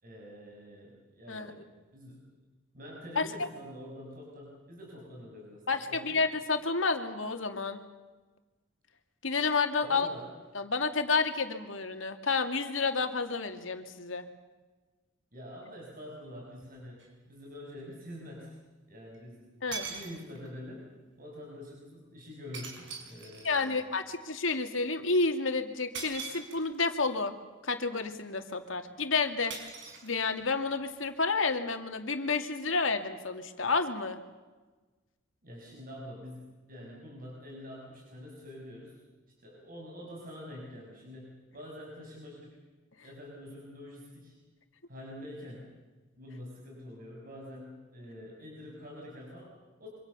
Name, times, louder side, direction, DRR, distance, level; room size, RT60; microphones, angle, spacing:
voice 1, 0.0-1.6 1.9-2.3 2.7-6.3 9.8-10.3 15.3-18.6 18.9-19.5 19.9-23.9 35.4-39.0 39.4-42.6 43.0-44.4 44.9-45.8 46.2-49.9, left 1 dB, 45° right, -2 dB, 6.5 m, -46 dB
voice 2, 3.2-3.5 5.7-7.8 9.2-10.1 10.5-14.3 19.6-19.9 23.4-27.3 27.6-29.5 30.0-34.2, left 4 dB, 85° left, 6 dB, 2.5 m, -30 dB
sound 1, 17.0-17.1 19.1-19.2 19.7-20.6 22.5-23.8 25.9-26.9 29.5-30.6, right 5 dB, 65° right, 5.6 m, -42 dB
26.0 x 25.5 x 7.0 m, 1.3 s
head